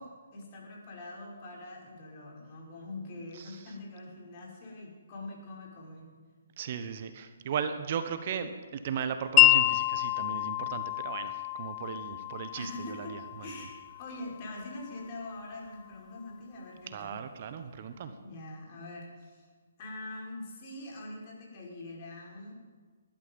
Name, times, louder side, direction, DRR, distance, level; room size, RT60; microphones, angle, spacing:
voice 1, 0.0-6.1 12.6-17.2 18.0-19.5 19.8-22.5, left 2 dB, 35° left, -2 dB, 5.5 m, -44 dB
voice 2, 6.6-13.7 16.9-18.1, right 7 dB, 45° right, 9 dB, 1.2 m, -37 dB
Wind chime, 9.4-15.4, left 16 dB, 20° left, 0.5 m, -28 dB
20.0 x 12.0 x 5.5 m, 1.5 s
hypercardioid pair, 140°, 0 cm